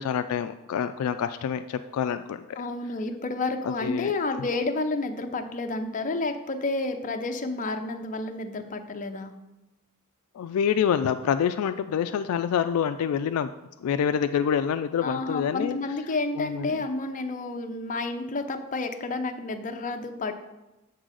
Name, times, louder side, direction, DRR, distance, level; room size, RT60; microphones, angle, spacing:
voice 1, 0.0-2.6 3.6-4.1 10.3-13.5 13.8-15.8 16.3-16.8, left 8 dB, 70° left, 11 dB, 0.3 m, -27 dB
voice 2, 2.6-9.3 15.0-20.3, left 3 dB, 35° left, 5 dB, 0.6 m, -30 dB
7.4 x 3.9 x 6.2 m, 0.99 s
head